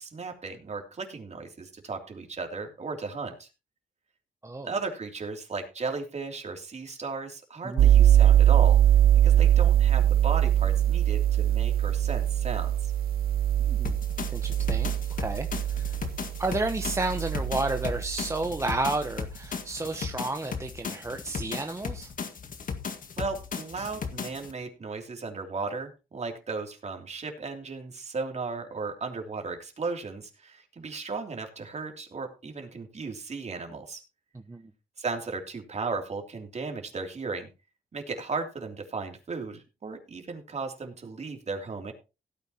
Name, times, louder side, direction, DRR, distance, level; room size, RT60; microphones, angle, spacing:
voice 1, 0.0-3.5 4.6-8.8 9.2-12.9 23.2-34.0 35.0-37.5 37.9-41.9, right 4 dB, 45° right, 3.2 m, -35 dB
sound 1, 7.8-18.4, right 11 dB, 75° right, 0.6 m, -22 dB
sound 2, 13.8-24.5, left 6 dB, 60° left, 1.9 m, -36 dB
voice 2, 14.3-15.5 15.7-15.9 16.4-22.1 34.5-34.7, right 2 dB, 20° right, 1.1 m, -31 dB
17.0 x 9.2 x 3.0 m
cardioid pair, 90°, 16 cm